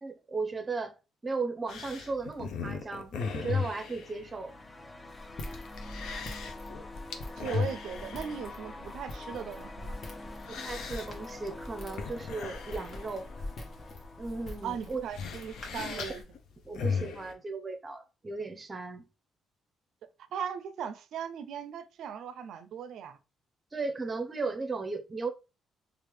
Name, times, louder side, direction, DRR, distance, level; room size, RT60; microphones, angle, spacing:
voice 1, 0.0-0.9 1.2-4.5 10.5-13.3 14.2-15.0 15.8-16.1 16.6-19.0 23.7-25.3, right 3 dB, 30° right, 0.6 m, -36 dB
sound 1, 1.7-17.3, left 5 dB, 75° left, 0.5 m, -38 dB
sound 2, 4.0-15.1, left 2 dB, 20° left, 0.4 m, -47 dB
Walk footsteps, 5.1-16.2, left 2 dB, 50° left, 0.9 m, -45 dB
voice 2, 7.4-10.0 14.6-16.2 20.3-23.2, right 8 dB, 75° right, 0.4 m, -38 dB
3.2 x 2.4 x 3.2 m
cardioid pair, 90°, 0 cm